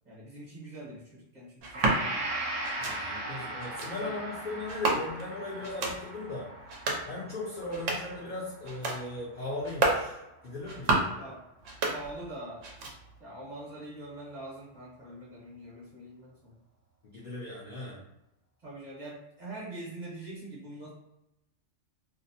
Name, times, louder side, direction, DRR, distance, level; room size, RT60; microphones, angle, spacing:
voice 1, 0.0-2.3 3.2-3.6 4.0-4.2 11.1-11.4 11.8-12.7 13.2-16.6 18.6-20.9, right 1 dB, 40° right, -6 dB, 0.9 m, -44 dB
sound 1, 1.6-2.0 2.6-3.0 3.6-3.9 4.7-5.3 5.6-6.0 6.6-7.1 7.6-8.2 8.6-9.0 9.6-10.1 10.6-11.2 11.6-12.3 12.6-13.2, right 3 dB, 75° right, 0.9 m, -31 dB
Gong, 1.7-9.8, right 2 dB, 55° right, 0.5 m, -39 dB
voice 2, 2.8-6.5 7.1-10.9 17.0-18.0, left 2 dB, 55° left, -5 dB, 0.5 m, -38 dB
2.5 x 2.0 x 2.7 m, 0.89 s
omnidirectional pair, 1.3 m